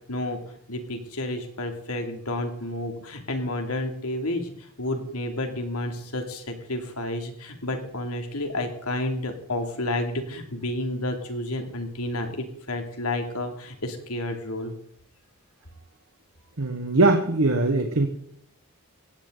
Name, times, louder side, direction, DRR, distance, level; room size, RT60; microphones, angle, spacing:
voice 1, 0.1-0.4 0.7-14.7, left 1 dB, 80° left, 4 dB, 2.8 m, -30 dB
voice 2, 16.6-18.1, right 2 dB, 70° right, 4 dB, 1.5 m, -21 dB
17.5 x 17.0 x 4.0 m, 0.64 s
head